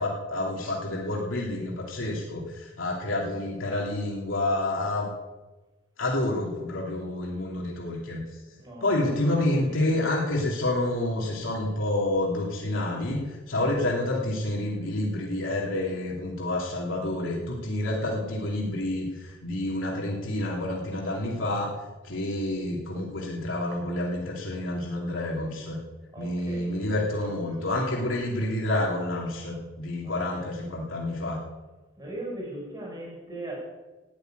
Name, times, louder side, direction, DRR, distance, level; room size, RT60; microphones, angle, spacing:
voice 1, 0.0-5.1 6.0-8.2 8.8-13.2 13.5-21.7 22.0-25.8 26.2-31.4, left 1 dB, 85° left, -3 dB, 3.0 m, -28 dB
voice 2, 8.6-10.0 13.2-13.8 26.1-27.6 30.0-30.1 32.0-33.5, right 1 dB, 20° right, -2 dB, 5.2 m, -40 dB
13.5 x 8.9 x 9.5 m, 1.2 s
head